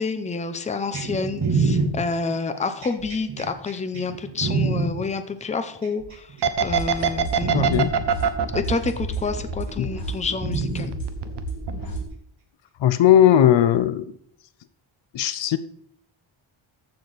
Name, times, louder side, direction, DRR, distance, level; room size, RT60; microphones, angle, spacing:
voice 1, 0.0-6.3 6.6-7.7 8.5-10.9, left 4 dB, 15° left, 9 dB, 0.7 m, -28 dB
sound 1, 0.9-4.9 5.8-6.5 6.9-7.1 7.4-7.9 9.0-9.1 10.4-10.9 12.0-12.1, right 4 dB, 35° right, 4.7 m, -25 dB
sound 2, 6.4-10.1 10.5-11.4 11.7-11.8, right 7 dB, 55° right, 0.9 m, -23 dB
sound 3, 6.6-12.0, right 1 dB, 45° left, 2.7 m, -32 dB
voice 2, 7.5-7.9 9.8-9.9 12.8-14.1 15.1-15.6, left 11 dB, 65° left, 14 dB, 0.8 m, -18 dB
14.5 x 6.7 x 4.1 m, 0.65 s
wide cardioid pair, 170°, 49 cm